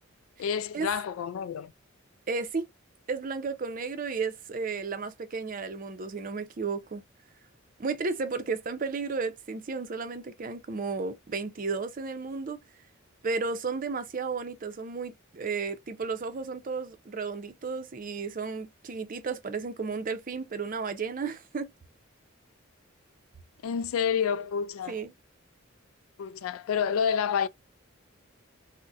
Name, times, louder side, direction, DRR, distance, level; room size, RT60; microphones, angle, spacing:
voice 1, 0.4-1.7 23.6-24.9 26.2-27.5, left 7 dB, 80° left, 0.3 m, -29 dB
voice 2, 2.3-2.7 3.1-7.0 7.8-12.6 13.2-21.7 24.9-25.1, right 4 dB, 40° right, 0.5 m, -33 dB
3.9 x 2.1 x 2.3 m
head